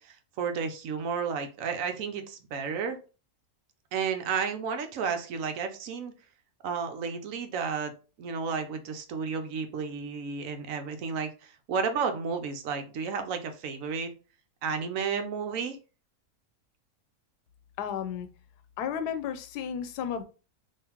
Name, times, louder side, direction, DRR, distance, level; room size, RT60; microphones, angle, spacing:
voice 1, 0.0-3.0 3.9-6.1 6.6-7.9 8.2-11.3 11.7-14.1 14.6-15.8, right 6 dB, 65° right, 1.0 m, -32 dB
voice 2, 17.8-18.3 18.8-20.2, left 8 dB, 85° left, 1.1 m, -33 dB
3.8 x 2.8 x 2.9 m
omnidirectional pair, 1.7 m